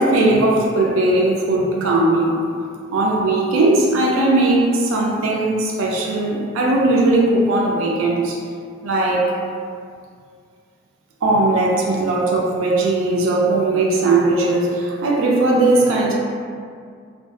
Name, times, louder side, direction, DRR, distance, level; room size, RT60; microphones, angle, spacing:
voice 1, 0.0-2.4 2.9-8.4 8.8-9.4 11.2-16.2, right 2 dB, 85° right, -1 dB, 0.4 m, -18 dB
2.5 x 2.2 x 2.3 m, 2.2 s
head